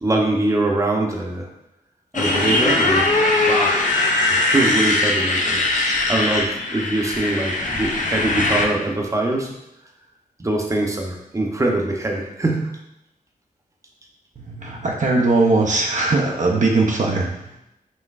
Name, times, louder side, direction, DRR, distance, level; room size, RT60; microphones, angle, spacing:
voice 1, 0.0-1.5 2.1-3.8 4.2-5.6 6.1-9.5 10.4-12.8, right 2 dB, 20° right, 0 dB, 0.7 m, -23 dB
Motorcycle, 2.1-8.7, left 2 dB, 60° left, 0.6 m, -20 dB
voice 2, 14.4-17.6, right 3 dB, 55° right, 0 dB, 0.6 m, -20 dB
5.3 x 3.1 x 2.4 m, 0.87 s
wide cardioid pair, 75°, 15 cm